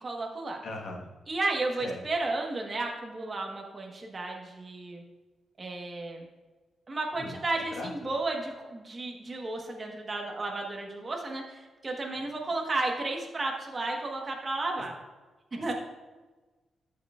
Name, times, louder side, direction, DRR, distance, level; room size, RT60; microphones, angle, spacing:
voice 1, 0.0-0.6 1.3-5.0 5.6-6.3 6.9-14.9 15.5-15.7, right 2 dB, 30° right, 1 dB, 1.2 m, -33 dB
voice 2, 0.6-1.1 1.8-2.0 7.1-7.4 7.7-7.9, left 2 dB, 55° left, 1 dB, 1.4 m, -38 dB
13.0 x 6.6 x 2.4 m, 1.2 s
wide cardioid pair, 150°, 0 cm